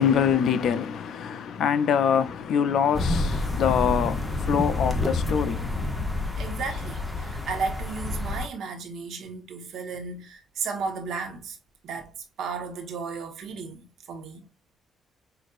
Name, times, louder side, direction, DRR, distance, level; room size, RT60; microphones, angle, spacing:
voice 1, 0.0-6.0, left 8 dB, 70° left, 0.5 m, -24 dB
sound 1, 2.9-8.5, left 2 dB, 5° left, 1.0 m, -28 dB
voice 2, 6.4-11.6 11.8-12.1 12.4-14.5, right 5 dB, 70° right, 1.2 m, -34 dB
5.9 x 2.6 x 2.5 m
cardioid pair, 90°, 0 cm